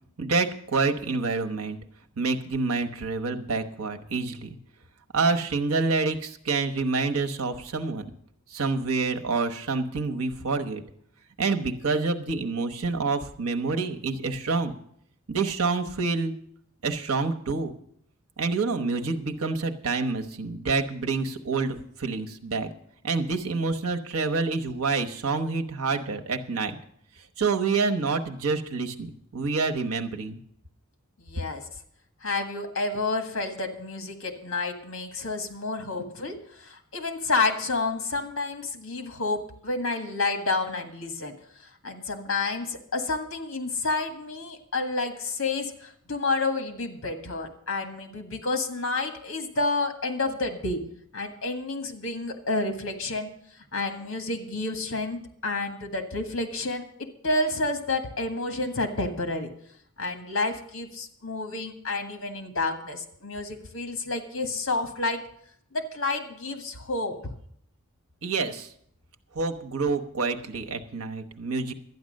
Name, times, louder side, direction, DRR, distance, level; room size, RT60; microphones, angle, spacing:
voice 1, 0.2-1.8 2.2-4.6 5.1-8.0 8.5-10.8 11.4-14.7 15.3-16.3 16.8-17.7 18.4-22.7 23.0-26.8 27.4-30.4 68.2-68.7 69.3-71.7, right 4 dB, 90° right, 6 dB, 1.1 m, -27 dB
voice 2, 31.2-31.7 32.2-41.4 41.8-50.8 51.1-53.3 53.7-59.5 60.0-65.2 65.7-67.2, left 3 dB, 65° left, 6 dB, 1.7 m, -30 dB
12.5 x 9.6 x 6.4 m, 0.68 s
head